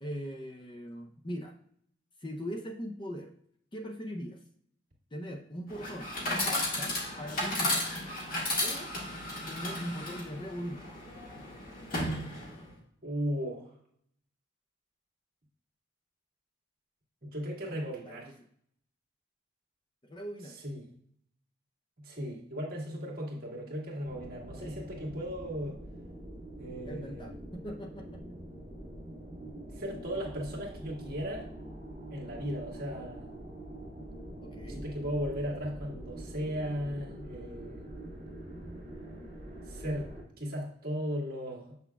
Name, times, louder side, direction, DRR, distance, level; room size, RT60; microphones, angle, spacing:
voice 1, 0.0-1.5 2.2-3.3 3.7-4.4 5.1-7.8 8.6-8.9 9.5-10.9 18.0-18.2 20.0-20.6 24.5-24.7 26.9-28.2 34.4-34.9, equal, 25° left, 4 dB, 0.5 m, -40 dB
Chatter / Coin (dropping), 5.7-12.7, left 1 dB, 45° left, 1.7 m, -34 dB
voice 2, 13.0-13.7 17.2-18.3 20.5-20.9 22.0-25.8 26.6-27.3 29.7-31.5 32.1-33.3 34.7-37.8 39.7-40.1 40.4-41.8, equal, 50° right, -3 dB, 1.8 m, -36 dB
sound 1, 24.1-40.2, right 1 dB, 30° right, 2.1 m, -45 dB
7.2 x 6.0 x 2.3 m, 0.66 s
head